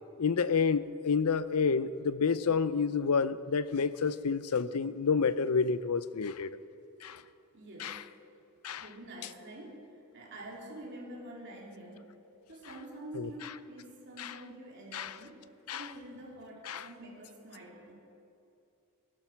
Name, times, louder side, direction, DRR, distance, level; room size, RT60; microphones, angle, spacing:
voice 1, 0.2-6.5 7.0-7.2 7.8-8.0 8.6-8.9 13.1-13.3 14.2-14.3 14.9-15.1 15.7-15.8 16.7-16.9, left 5 dB, 90° left, 0.6 m, -29 dB
voice 2, 7.5-8.1 8.8-12.1 12.5-17.9, right 1 dB, 55° right, 3.4 m, -47 dB
19.5 x 12.0 x 6.0 m
head